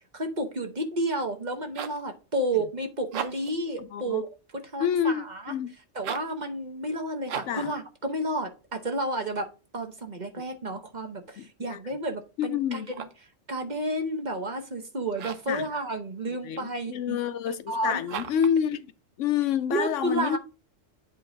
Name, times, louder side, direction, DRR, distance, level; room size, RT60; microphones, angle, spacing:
voice 1, 0.1-5.5 5.9-9.5 9.7-13.1 13.5-17.2 17.7-18.1 19.7-20.4, right 1 dB, 40° right, 1.0 m, -31 dB
sound 1, 1.4-2.1 3.0-3.6 5.9-6.4 7.3-7.7 12.7-13.3 15.1-15.6 18.1-18.6, right 8 dB, 90° right, 1.1 m, -37 dB
voice 2, 3.8-4.2 4.8-5.7 7.5-7.7 11.4-11.8 12.4-12.9 15.5-15.7 16.3-18.9 19.2-20.4, left 8 dB, 80° left, 0.9 m, -28 dB
8.1 x 3.4 x 3.9 m
omnidirectional pair, 1.3 m